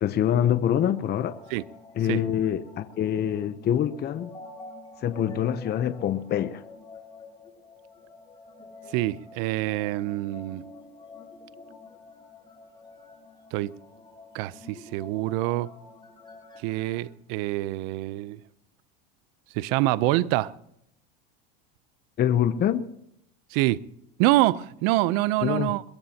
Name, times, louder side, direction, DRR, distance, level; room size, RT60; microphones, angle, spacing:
voice 1, 0.0-1.4 2.0-4.3 5.0-6.6 22.2-22.9 25.4-25.7, left 10 dB, 30° left, 0.8 m, -25 dB
sound 1, 1.3-17.0, left 3 dB, 15° left, 6.6 m, -48 dB
voice 2, 8.9-10.6 13.5-13.8 14.3-15.7 16.6-18.4 19.5-20.5 23.5-23.8 24.2-25.8, right 17 dB, 60° right, 0.8 m, -25 dB
22.5 x 22.0 x 2.9 m
supercardioid pair, 110°, 32 cm